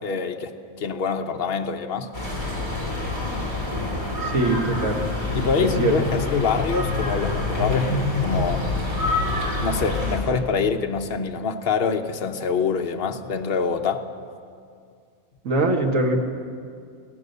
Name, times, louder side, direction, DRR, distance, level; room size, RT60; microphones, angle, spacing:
voice 1, 0.0-2.1 5.3-8.7 9.6-14.0, left 5 dB, 45° left, 5 dB, 1.1 m, -25 dB
sound 1, 2.1-10.2, left 2 dB, 15° right, 5.4 m, -26 dB
voice 2, 4.2-5.0 5.6-6.2 15.4-16.2, right 2 dB, 65° right, 3 dB, 2.1 m, -22 dB
24.0 x 17.0 x 6.8 m, 2.3 s
omnidirectional pair, 1.5 m